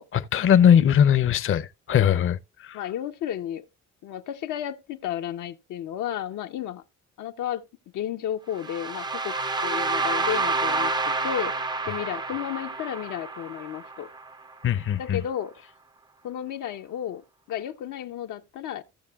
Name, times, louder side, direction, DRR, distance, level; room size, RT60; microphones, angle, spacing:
voice 1, 0.1-2.8 14.6-15.2, left 9 dB, 45° left, 0.6 m, -20 dB
voice 2, 2.7-3.6 4.0-6.8 7.2-7.6 7.9-9.4 9.6-14.1 14.9-15.5 16.2-17.2 17.5-18.8, left 10 dB, 80° left, 0.8 m, -33 dB
sound 1, 8.6-14.5, right 3 dB, 15° right, 0.4 m, -28 dB
15.5 x 6.7 x 2.3 m
cardioid pair, 90°, 30 cm